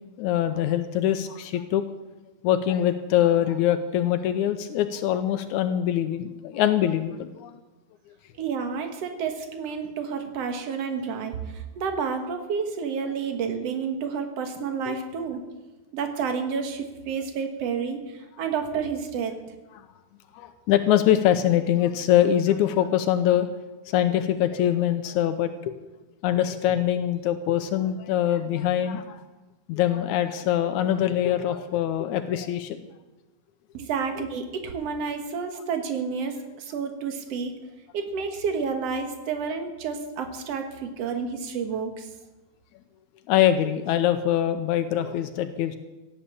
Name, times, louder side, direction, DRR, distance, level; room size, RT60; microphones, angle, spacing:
voice 1, 0.2-1.8 2.4-7.5 14.9-15.0 20.3-23.5 23.9-25.7 26.2-29.2 29.7-32.8 43.3-45.8, left 11 dB, 80° left, 9 dB, 2.1 m, -23 dB
voice 2, 8.4-15.4 15.9-18.0 18.4-19.3 33.7-37.6 37.9-42.1, right 6 dB, 60° right, 5 dB, 2.5 m, -30 dB
16.5 x 8.5 x 8.4 m, 1.1 s
omnidirectional pair, 3.4 m